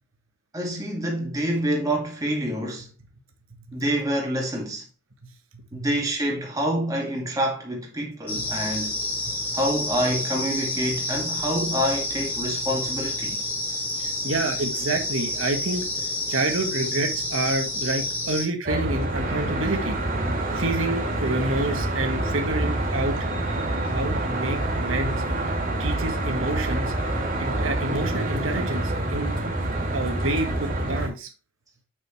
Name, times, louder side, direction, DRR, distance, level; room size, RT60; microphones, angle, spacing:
voice 1, 0.5-2.9 3.7-4.8 5.7-8.9 9.5-13.4, equal, 15° right, 2.1 m, -27 dB
voice 2, 5.2-5.8 8.3-8.5 9.3-9.4 14.0-15.9 16.3-20.0 20.5-23.2 23.8-25.2 25.8-26.9 27.4-29.4 29.9-31.3, right 2 dB, 80° right, 1.6 m, -28 dB
sound 1, 8.3-18.5, left 2 dB, 10° left, 2.9 m, -29 dB
Traffic noise roadway noise, 18.7-31.1, right 1 dB, 40° right, 2.4 m, -27 dB
7.0 x 6.4 x 3.2 m
head